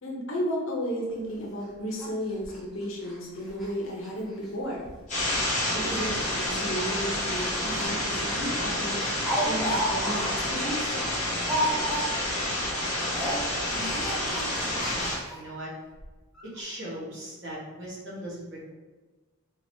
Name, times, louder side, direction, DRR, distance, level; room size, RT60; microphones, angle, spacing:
voice 1, 0.0-4.9 5.7-9.0 9.4-10.9, equal, 65° left, -1 dB, 0.8 m, -33 dB
Speech, 1.1-1.2 1.5-1.6 2.0-2.1 2.4-2.6 3.0-3.2 3.4-3.7 4.0-4.1 4.8-5.1 5.8-7.9 8.3-8.4 8.8-12.3 12.6-12.8 13.1-15.4 16.0-16.1 16.3-16.4, equal, ahead, 0.7 m, -33 dB
sound 1, 5.1-15.1, left 1 dB, 35° left, 1.2 m, -29 dB
voice 2, 13.7-14.1 15.3-15.7 16.4-18.7, right 1 dB, 55° right, -5 dB, 1.1 m, -39 dB
3.7 x 3.0 x 2.7 m, 1.2 s
head